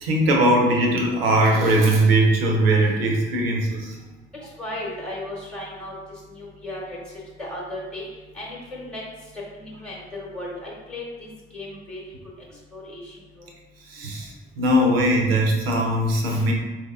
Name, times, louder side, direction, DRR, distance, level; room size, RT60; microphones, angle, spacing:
voice 1, 0.0-4.0 13.9-16.5, right 1 dB, 75° right, 0 dB, 0.6 m, -20 dB
voice 2, 4.4-5.9 6.3-7.0 7.4-8.0 8.3-9.0 9.3-12.0 12.7-13.5, left 1 dB, 5° left, -5 dB, 1.0 m, -35 dB
4.3 x 2.7 x 2.4 m, 1.2 s
figure-of-eight pair, 45°, 30 cm